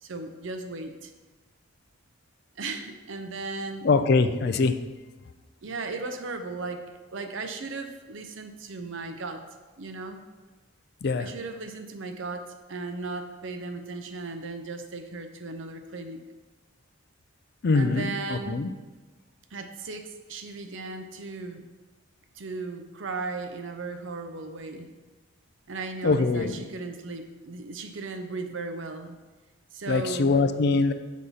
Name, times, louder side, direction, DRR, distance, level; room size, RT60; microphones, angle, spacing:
voice 1, 0.0-1.1 2.6-3.9 5.6-9.4 9.8-10.2 11.2-16.2 17.7-18.6 19.5-21.7 22.3-24.9 25.7-29.2 29.7-30.4, right 3 dB, 65° right, 7 dB, 0.6 m, -36 dB
voice 2, 3.8-4.8 11.0-11.3 17.6-18.7 26.0-26.7 29.9-30.9, left 3 dB, 50° left, 10 dB, 0.4 m, -23 dB
6.3 x 4.1 x 5.5 m, 1.2 s
head